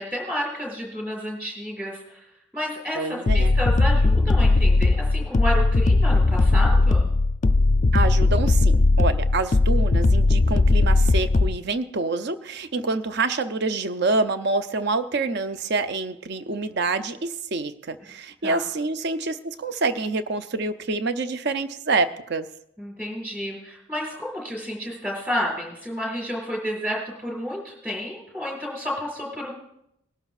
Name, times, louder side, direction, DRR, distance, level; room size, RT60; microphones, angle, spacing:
voice 1, 0.0-2.3 2.5-7.1 18.4-18.6 22.8-29.5, equal, 10° right, -2 dB, 5.5 m, -31 dB
voice 2, 3.0-3.5 7.9-22.5, right 3 dB, 55° right, 10 dB, 0.6 m, -27 dB
sound 1, 3.3-11.6, left 2 dB, 35° left, 0.4 m, -18 dB
20.5 x 12.0 x 2.4 m, 0.79 s
head